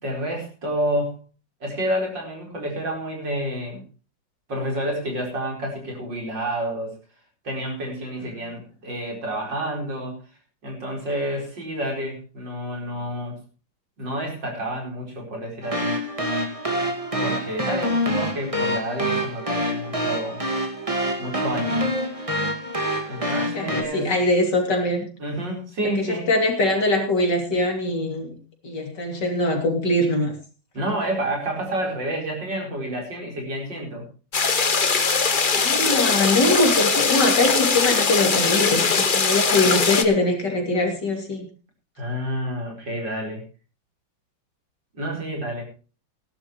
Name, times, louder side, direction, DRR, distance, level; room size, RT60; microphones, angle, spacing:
voice 1, 0.0-1.2 1.6-3.8 4.5-6.9 7.4-10.2 10.6-13.4 14.0-16.0 17.2-20.4 21.2-21.9 23.1-24.2 25.2-26.3 30.7-34.1 42.0-43.4 44.9-45.6, right 1 dB, 65° right, 0 dB, 5.2 m, -29 dB
sound 1, 15.6-23.8, equal, 15° right, 2.0 m, -26 dB
voice 2, 23.5-25.1 25.8-28.4 28.6-30.3 35.5-41.5, left 2 dB, 60° left, 2 dB, 3.5 m, -22 dB
sound 2, 34.3-40.0, left 5 dB, 35° left, 0.9 m, -21 dB
18.0 x 12.0 x 3.1 m, 0.35 s
omnidirectional pair, 2.1 m